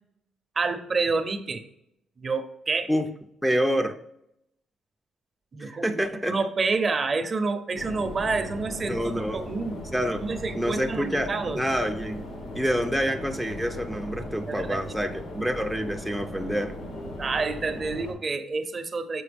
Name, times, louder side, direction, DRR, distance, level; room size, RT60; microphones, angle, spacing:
voice 1, 0.6-1.6 2.2-2.9 5.5-9.8 10.2-11.6 14.5-14.8 17.2-19.2, right 4 dB, 40° right, 9 dB, 0.7 m, -28 dB
voice 2, 3.4-4.0 5.6-6.4 8.9-9.5 9.9-10.3 10.5-12.3 12.6-16.8, equal, ahead, 2 dB, 0.6 m, -27 dB
sound 1, 7.7-18.1, left 1 dB, 75° left, 2.0 m, -38 dB
6.9 x 4.5 x 3.5 m, 0.75 s
cardioid pair, 90°, 0 cm